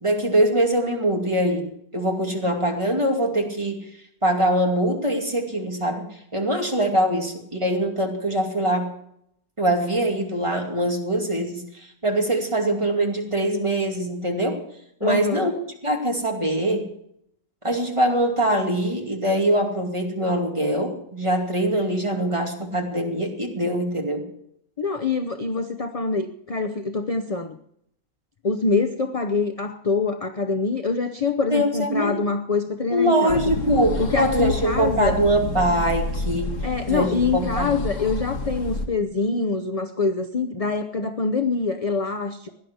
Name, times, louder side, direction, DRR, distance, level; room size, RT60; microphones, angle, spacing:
voice 1, 0.0-1.7 1.9-3.9 4.2-6.0 6.3-9.0 9.6-14.6 15.0-15.5 15.8-16.9 17.6-24.3 31.5-32.2 32.9-36.5 36.9-37.7, right 1 dB, 20° right, 1 dB, 2.6 m, -23 dB
voice 2, 15.0-15.5 24.8-27.6 28.4-33.4 34.0-35.2 36.6-42.5, left 4 dB, 40° left, 7 dB, 0.5 m, -25 dB
sound 1, 33.3-38.9, left 2 dB, 55° left, 1.7 m, -29 dB
17.5 x 11.0 x 6.4 m, 0.73 s
omnidirectional pair, 1.6 m